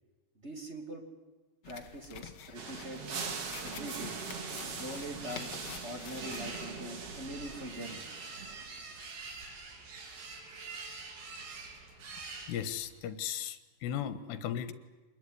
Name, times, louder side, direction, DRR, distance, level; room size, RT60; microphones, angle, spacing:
voice 1, 0.4-1.0 1.6-3.0 3.6-4.2 4.7-5.5 5.8-8.0, right 1 dB, 20° right, 4 dB, 2.1 m, -43 dB
sound 1, 1.6-6.7, left 8 dB, 60° left, 1.7 m, -48 dB
sound 2, 2.5-8.8, right 5 dB, 45° right, 2.4 m, -42 dB
sound 3, 4.4-13.0, right 3 dB, 80° right, 6.1 m, -46 dB
voice 2, 12.5-14.7, left 9 dB, 75° left, 12 dB, 3.5 m, -36 dB
25.5 x 21.0 x 9.6 m, 1.2 s
omnidirectional pair, 5.1 m